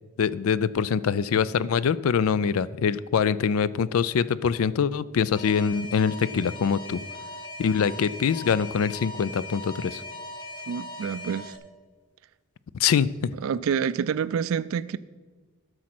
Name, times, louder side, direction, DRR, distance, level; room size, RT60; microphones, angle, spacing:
voice 1, 0.2-7.0 7.6-10.0 12.7-13.1, left 6 dB, 80° left, 18 dB, 0.4 m, -24 dB
Alarm, 5.3-11.6, left 2 dB, 20° left, 1.1 m, -39 dB
voice 2, 10.7-11.6 13.4-15.0, right 7 dB, 70° right, 15 dB, 0.3 m, -27 dB
12.5 x 6.3 x 6.0 m, 1.4 s
head